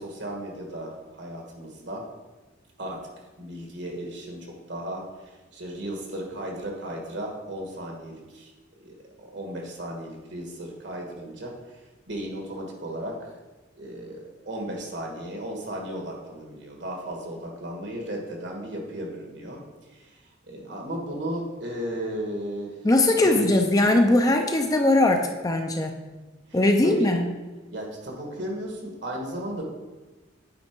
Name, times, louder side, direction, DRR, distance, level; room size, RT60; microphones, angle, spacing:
voice 1, 0.0-2.0 2.8-3.0 3.4-5.1 5.5-8.5 8.8-11.5 12.1-13.3 13.8-19.6 19.9-20.1 20.5-22.7 23.1-23.6 26.5-26.6 26.8-27.1 27.7-29.6, right 1 dB, 65° right, 0 dB, 1.6 m, -35 dB
voice 2, 22.8-25.9 26.5-27.3, left 2 dB, 20° left, 4 dB, 0.5 m, -20 dB
8.7 x 4.2 x 4.5 m, 1.2 s
head